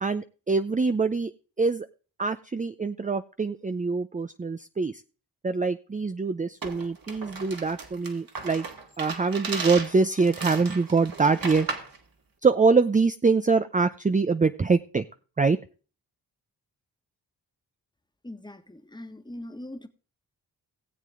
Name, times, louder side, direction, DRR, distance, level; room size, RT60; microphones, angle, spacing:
voice 1, 0.0-1.3 1.6-1.9 2.2-5.0 5.4-8.7 9.0-11.7 12.4-15.0 15.4-15.6, right 4 dB, 20° right, 0.6 m, -24 dB
sound 1, 6.6-12.0, right 4 dB, 55° right, 2.3 m, -36 dB
voice 2, 18.2-19.9, left 1 dB, 10° left, 1.5 m, -41 dB
18.5 x 7.6 x 3.7 m
cardioid pair, 60°, 41 cm